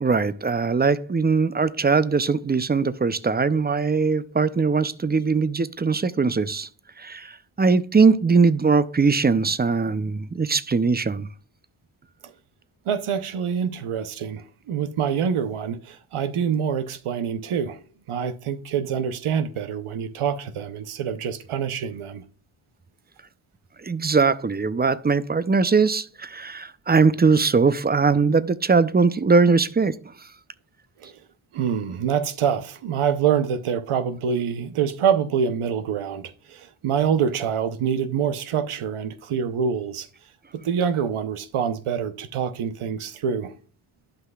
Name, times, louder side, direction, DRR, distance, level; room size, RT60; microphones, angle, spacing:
voice 1, 0.0-6.7 7.0-11.3 23.8-30.0, right 4 dB, 20° right, 0.5 m, -21 dB
voice 2, 12.9-17.8 18.1-22.2 31.0-31.1 31.5-40.1 40.5-43.5, right 7 dB, 85° right, 0.8 m, -26 dB
11.5 x 5.6 x 2.3 m
cardioid pair, 65°, 49 cm